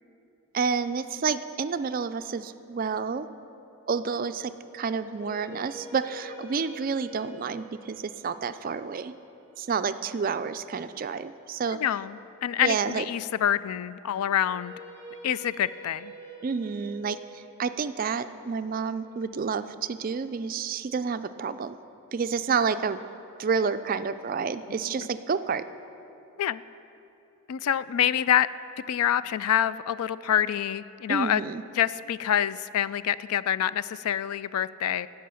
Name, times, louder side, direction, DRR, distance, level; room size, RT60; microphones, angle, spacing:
voice 1, 0.5-3.3 3.9-9.1 9.6-11.8 12.6-13.0 16.4-21.8 22.1-23.0 23.4-25.6 31.1-31.6, right 5 dB, 40° right, 12 dB, 0.3 m, -29 dB
sound 1, 4.8-10.9 14.2-20.3, equal, 15° left, 2.8 m, -47 dB
voice 2, 11.7-14.7 15.2-16.1 24.7-24.9 26.4-26.6 27.5-28.5 28.9-31.4 31.8-35.1, left 10 dB, 80° left, 17 dB, 0.3 m, -26 dB
16.0 x 5.7 x 6.9 m, 2.9 s
head